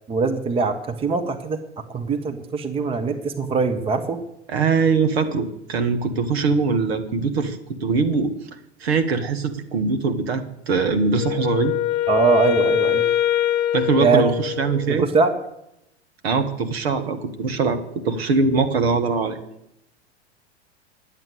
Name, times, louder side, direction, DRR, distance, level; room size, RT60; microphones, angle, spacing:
voice 1, 0.1-1.6 1.9-4.2 12.1-13.0 14.0-14.2 14.9-15.3, right 4 dB, 15° right, 7 dB, 1.0 m, -22 dB
voice 2, 4.5-8.3 8.8-11.7 13.7-15.1 16.2-17.8 18.0-19.4, right 4 dB, 60° right, 8 dB, 1.6 m, -22 dB
Wind instrument woodwind instrument, 11.2-15.1, left 10 dB, 30° left, 0.5 m, -23 dB
10.5 x 8.3 x 8.3 m, 0.81 s
figure-of-eight pair, 95°, 35 cm